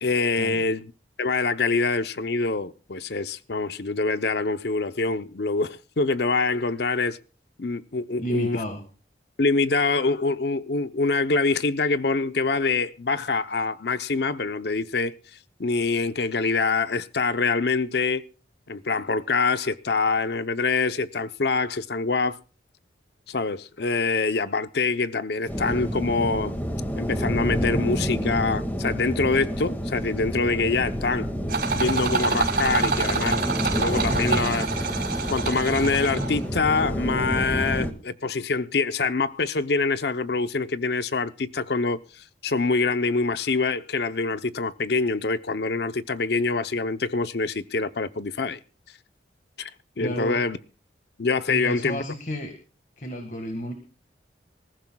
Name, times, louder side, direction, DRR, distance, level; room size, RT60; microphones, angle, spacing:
voice 1, 0.0-0.9 1.2-7.2 7.6-8.6 9.4-15.1 15.6-18.2 18.7-22.4 23.3-26.5 27.0-31.3 31.7-33.4 33.7-34.7 35.3-48.6 49.6-49.7 50.0-50.6 51.2-52.0, left 4 dB, 60° left, 0.7 m, -25 dB
voice 2, 8.2-8.8 50.0-50.4 51.5-52.6 53.0-53.7, equal, 45° left, 1.7 m, -32 dB
sound 1, 25.5-37.9, equal, 10° left, 1.9 m, -28 dB
sound 2, 31.5-36.4, right 4 dB, 55° right, 5.4 m, -27 dB
26.0 x 14.5 x 2.3 m
head